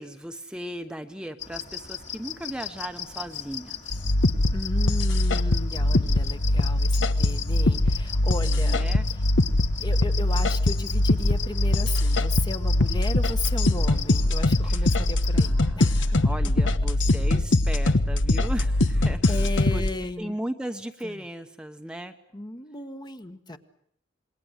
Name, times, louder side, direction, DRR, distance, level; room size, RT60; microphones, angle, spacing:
voice 1, 0.0-4.0 8.6-9.0 14.6-14.9 15.3-19.8 20.2-22.1, right 1 dB, 5° right, 6 dB, 1.1 m, -37 dB
sound 1, 1.4-15.5, left 9 dB, 40° left, 2.3 m, -38 dB
sound 2, 3.9-19.9, left 1 dB, 75° left, 1.2 m, -22 dB
voice 2, 4.5-8.8 9.8-16.3 19.3-20.3 21.0-21.2 22.3-23.6, left 2 dB, 20° left, 8 dB, 1.3 m, -35 dB
27.0 x 22.0 x 8.1 m, 0.67 s
head